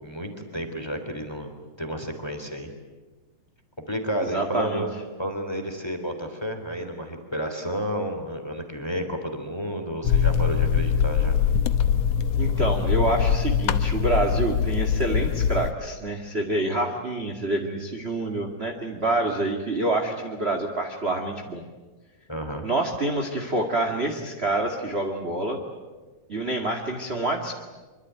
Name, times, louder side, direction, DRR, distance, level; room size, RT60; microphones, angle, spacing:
voice 1, 0.0-2.7 3.9-4.9 5.2-11.4 22.3-22.6, equal, 10° left, 5 dB, 3.0 m, -31 dB
voice 2, 4.2-4.8 12.4-21.6 22.6-25.6 26.3-27.5, right 2 dB, 25° right, 3 dB, 1.9 m, -27 dB
sound 1, 10.0-15.7, left 8 dB, 65° left, 1.9 m, -23 dB
25.5 x 24.5 x 9.3 m, 1.3 s
omnidirectional pair, 3.6 m